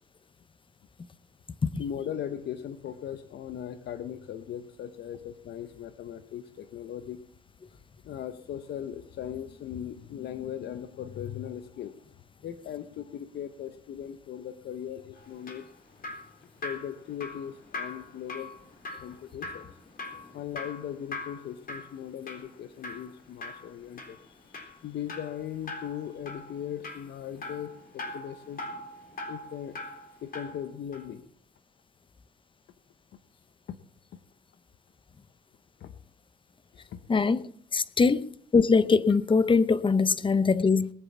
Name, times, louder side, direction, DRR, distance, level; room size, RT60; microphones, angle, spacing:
voice 1, 1.8-7.2 7.7-11.9 12.4-15.7 16.6-18.5 19.0-19.8 20.3-28.7 29.3-29.7 30.2-31.3 33.7-33.8 34.1-34.2 35.8-35.9 36.7-37.0, left 9 dB, 70° left, 0.9 m, -38 dB
Drip, 15.2-30.6 30.9-31.1, left 2 dB, 55° left, 3.9 m, -42 dB
voice 2, 37.1-37.4 37.7-40.9, left 4 dB, 30° left, 0.7 m, -22 dB
20.0 x 8.0 x 7.3 m
cardioid pair, 80°, 18 cm